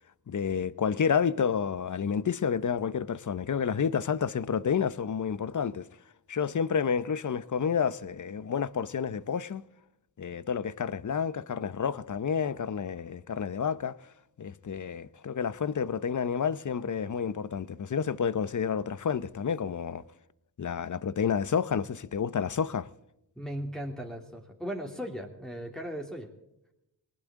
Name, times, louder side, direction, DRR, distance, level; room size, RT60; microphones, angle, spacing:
voice 1, 0.3-5.9 6.3-9.6 10.2-14.0 14.4-20.0 20.6-22.9, left 7 dB, 45° left, 0.8 m, -30 dB
voice 2, 23.4-26.3, equal, ahead, 2.7 m, -37 dB
20.0 x 19.0 x 3.7 m
cardioid pair, 60°, 43 cm